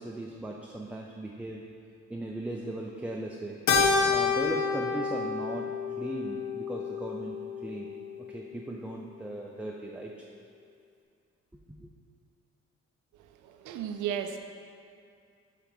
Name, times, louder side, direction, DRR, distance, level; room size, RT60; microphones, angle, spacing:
voice 1, 0.0-1.6 2.1-3.6 4.1-10.3 11.5-11.9, right 1 dB, 5° right, -1 dB, 0.4 m, -38 dB
Keyboard (musical), 3.7-8.3, left 5 dB, 70° left, 0.8 m, -29 dB
voice 2, 13.4-14.4, right 9 dB, 80° right, 6 dB, 0.6 m, -34 dB
7.6 x 3.4 x 5.1 m, 2.4 s
cardioid pair, 90°, 30 cm